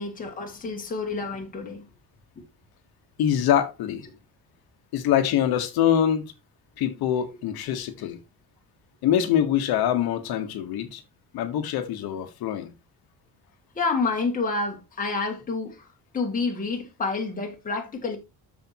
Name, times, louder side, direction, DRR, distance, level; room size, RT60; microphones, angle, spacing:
voice 1, 0.0-1.8 2.4-2.5 13.8-15.9 16.1-18.2, left 4 dB, 20° left, 2.2 m, -29 dB
voice 2, 3.2-4.1 4.9-6.2 6.8-8.2 9.0-11.0 11.3-12.7, left 10 dB, 80° left, 1.3 m, -24 dB
13.0 x 4.9 x 2.9 m
cardioid pair, 175°, 36 cm